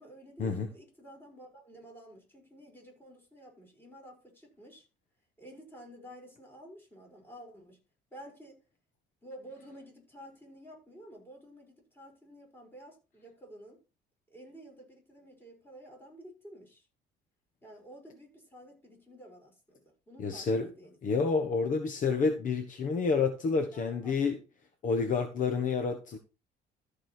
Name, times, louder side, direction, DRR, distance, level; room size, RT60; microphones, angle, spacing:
voice 1, 0.0-4.9 5.4-7.8 8.1-8.6 9.2-13.8 14.3-16.9 17.6-21.0 23.7-24.3, equal, 15° left, 5.7 m, -51 dB
voice 2, 20.2-20.7 21.0-24.4 24.8-26.2, left 4 dB, 50° left, 1.3 m, -29 dB
13.5 x 5.0 x 4.5 m
cardioid pair, 110°, 17 cm